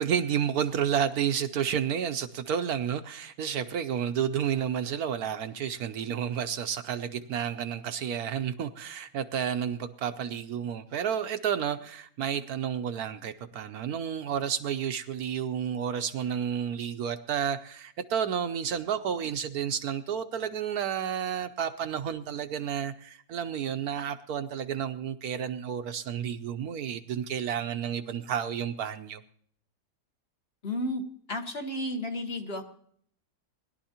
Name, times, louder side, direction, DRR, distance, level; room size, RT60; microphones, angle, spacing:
voice 1, 0.0-29.2, right 8 dB, 70° right, 9 dB, 1.1 m, -31 dB
voice 2, 30.6-31.0 31.3-32.6, left 1 dB, 40° left, 4 dB, 1.4 m, -32 dB
21.0 x 11.5 x 2.9 m, 0.62 s
omnidirectional pair, 1.8 m